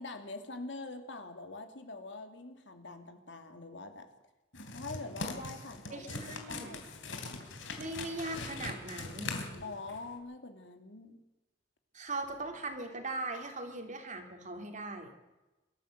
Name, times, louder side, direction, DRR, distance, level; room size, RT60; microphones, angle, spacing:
voice 1, 0.0-4.1 4.7-7.4 9.6-11.2, left 3 dB, 70° left, 6 dB, 2.5 m, -45 dB
sound 1, 4.5-10.1, left 3 dB, 85° left, 3.3 m, -41 dB
voice 2, 5.9-6.8 7.8-9.3 11.9-15.1, right 2 dB, 40° right, 4 dB, 3.2 m, -39 dB
23.5 x 13.5 x 8.0 m, 1.1 s
head